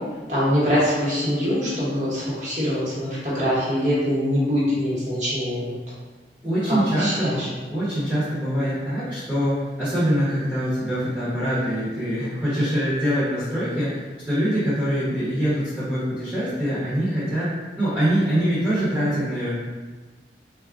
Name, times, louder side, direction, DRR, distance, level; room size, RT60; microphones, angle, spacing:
voice 1, 0.3-5.7 6.7-7.5, equal, 40° right, -9 dB, 1.1 m, -23 dB
voice 2, 6.4-17.5 17.8-19.6, equal, 10° right, -12 dB, 0.9 m, -24 dB
4.0 x 2.3 x 2.4 m, 1.3 s
head